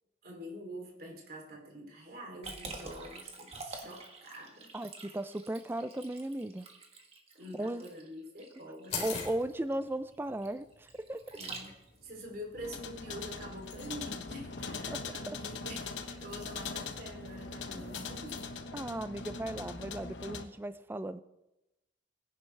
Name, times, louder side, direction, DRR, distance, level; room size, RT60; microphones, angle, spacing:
voice 1, 0.2-4.7 7.3-9.1 11.3-18.5, equal, 55° right, 0 dB, 3.0 m, -46 dB
Liquid, 2.4-12.1, right 3 dB, 35° right, 1.6 m, -47 dB
voice 2, 4.7-6.7 7.6-7.8 9.0-11.2 14.9-15.0 15.3-15.4 17.7-17.9 18.7-21.2, right 1 dB, 10° right, 13 dB, 0.3 m, -36 dB
sound 1, 8.9-18.4, left 5 dB, 40° left, 3.0 m, -47 dB
sound 2, 12.6-20.4, left 4 dB, 90° left, 1.0 m, -41 dB
18.5 x 11.0 x 3.3 m, 0.95 s
head